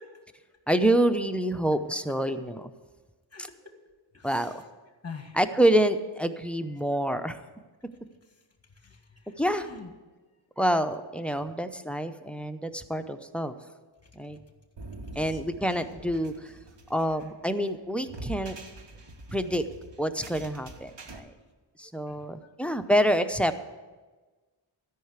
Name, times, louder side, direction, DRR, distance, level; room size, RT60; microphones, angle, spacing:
voice 1, 0.0-0.5 3.3-3.7 4.1-4.6 5.0-5.4 8.2-9.9 10.2-10.3 14.0-14.6 15.0-15.5 19.1-19.2 22.1-22.7, left 4 dB, 30° left, 5 dB, 1.7 m, -48 dB
voice 2, 0.7-2.7 4.2-4.5 5.4-7.4 9.4-9.7 10.6-13.5 14.2-14.4 15.2-16.5 16.9-18.6 19.3-19.6 20.0-21.3 21.8-23.6, right 1 dB, 5° left, 10 dB, 0.6 m, -27 dB
sound 1, 14.8-21.2, right 2 dB, 60° right, 1.3 m, -44 dB
13.0 x 5.7 x 8.1 m, 1.3 s
wide cardioid pair, 60°, 48 cm